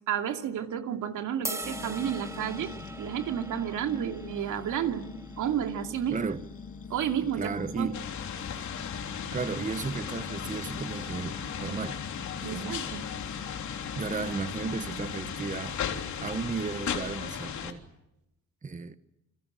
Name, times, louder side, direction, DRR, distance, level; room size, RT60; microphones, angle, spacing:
voice 1, 0.1-2.7 3.0-5.1 5.4-6.2 6.9-7.9 12.4-13.0, right 9 dB, 75° right, 2.8 m, -31 dB
sound 1, 1.4-7.7, right 2 dB, 10° right, 1.5 m, -43 dB
sound 2, 1.6-15.3, left 5 dB, 45° left, 2.3 m, -44 dB
voice 2, 6.1-6.5 7.3-8.0 9.3-12.0 12.4-12.8 13.9-15.8 16.2-17.8 18.6-19.0, right 4 dB, 25° right, 1.2 m, -34 dB
sound 3, 7.9-17.7, left 8 dB, 70° left, 3.5 m, -36 dB
29.5 x 22.0 x 7.7 m
cardioid pair, 90°, 30 cm